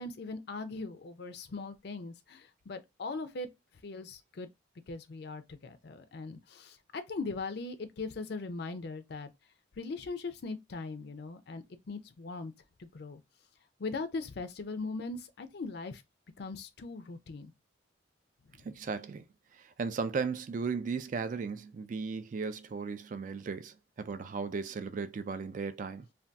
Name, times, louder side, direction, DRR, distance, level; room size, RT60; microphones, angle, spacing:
voice 1, 0.0-3.5 3.8-4.5 4.9-9.3 9.8-12.5 12.8-13.2 13.8-16.0 16.4-17.5 18.5-18.6, left 3 dB, 60° left, 0.5 m, -40 dB
voice 2, 18.6-19.2 19.5-26.1, right 5 dB, 45° right, 0.3 m, -36 dB
2.6 x 2.3 x 3.3 m
head